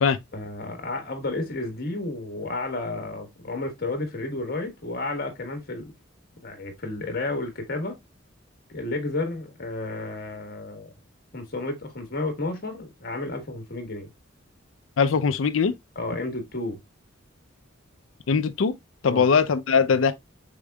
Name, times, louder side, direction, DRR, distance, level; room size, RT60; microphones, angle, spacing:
voice 1, 0.3-5.9 6.4-8.0 8.7-10.9 11.3-14.1 15.9-16.8 19.0-19.4, left 2 dB, 50° left, 1.2 m, -32 dB
voice 2, 15.0-15.7 18.3-18.8 19.0-20.1, left 5 dB, 80° left, 0.5 m, -21 dB
5.0 x 3.7 x 2.2 m
head